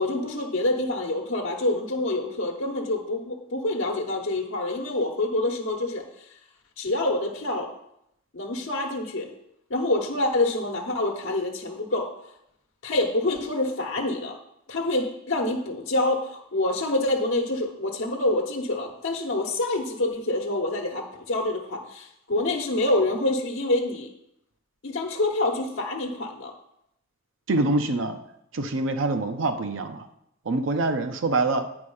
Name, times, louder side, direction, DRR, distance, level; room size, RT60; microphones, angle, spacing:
voice 1, 0.0-6.0 6.8-7.7 8.3-9.3 9.7-12.1 12.8-14.4 14.7-24.1 24.8-26.5, left 2 dB, 80° left, 0 dB, 0.9 m, -26 dB
voice 2, 27.5-28.2 28.5-30.1 30.5-31.6, right 2 dB, 75° right, 6 dB, 0.6 m, -25 dB
8.7 x 4.9 x 5.5 m, 0.78 s
head